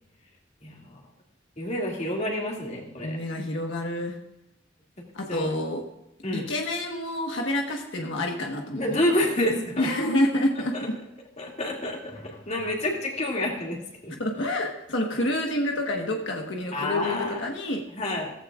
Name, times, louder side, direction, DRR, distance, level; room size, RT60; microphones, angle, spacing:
voice 1, 0.6-1.0 1.6-3.2 5.3-5.5 6.2-6.5 8.8-9.9 10.7-10.9 11.4-14.1 16.7-17.4 18.0-18.3, left 1 dB, 40° left, -1 dB, 2.5 m, -28 dB
voice 2, 3.0-4.2 5.1-5.8 6.3-9.0 9.8-10.9 14.2-17.8, left 1 dB, 85° left, 1 dB, 1.5 m, -28 dB
16.5 x 15.0 x 2.5 m, 0.91 s
head